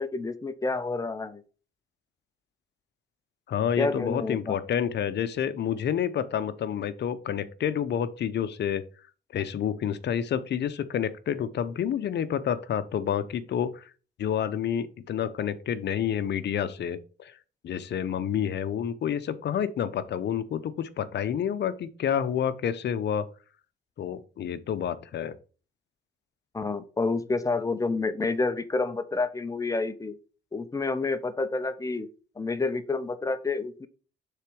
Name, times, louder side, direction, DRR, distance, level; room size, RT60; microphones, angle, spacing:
voice 1, 0.0-1.4 3.8-4.6 26.5-30.2 30.5-32.1 32.4-33.9, left 3 dB, 15° left, 10 dB, 0.8 m, -29 dB
voice 2, 3.5-8.8 9.3-13.9 14.2-17.4 17.6-23.3 24.0-25.3, left 9 dB, 60° left, 13 dB, 0.8 m, -29 dB
6.6 x 3.9 x 4.7 m, 0.37 s
cardioid pair, 90°, 20 cm